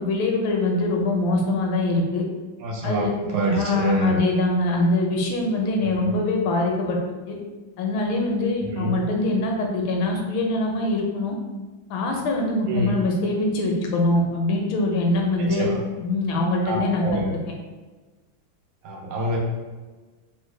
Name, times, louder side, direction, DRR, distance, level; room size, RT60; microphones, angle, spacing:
voice 1, 0.0-2.2 2.8-3.1 3.5-7.0 7.3-7.4 7.8-11.3 11.9-15.7 16.0-17.2, left 2 dB, 75° left, 0 dB, 1.4 m, -23 dB
voice 2, 2.6-4.2 5.8-6.1 8.6-8.9 12.7-13.0 15.4-15.8 16.6-17.3 18.8-19.4, right 1 dB, 85° right, -2 dB, 1.6 m, -26 dB
3.9 x 2.1 x 3.1 m, 1.3 s
omnidirectional pair, 2.2 m